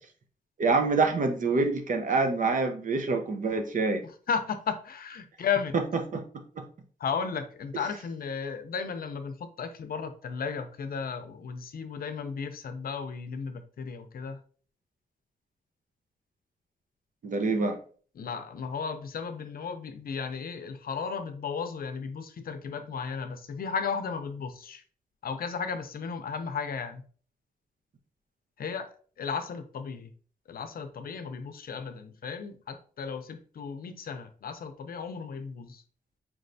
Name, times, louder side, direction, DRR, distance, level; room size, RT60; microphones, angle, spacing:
voice 1, 0.6-4.0 6.1-6.2 6.6-6.7 17.2-17.8, right 3 dB, 55° right, 0.7 m, -26 dB
voice 2, 4.0-5.7 7.0-14.4 18.2-24.8 25.2-27.0 28.6-28.9 29.2-30.1 30.5-35.8, left 6 dB, 70° left, 0.5 m, -34 dB
4.6 x 3.2 x 2.6 m
wide cardioid pair, 130°, 16 cm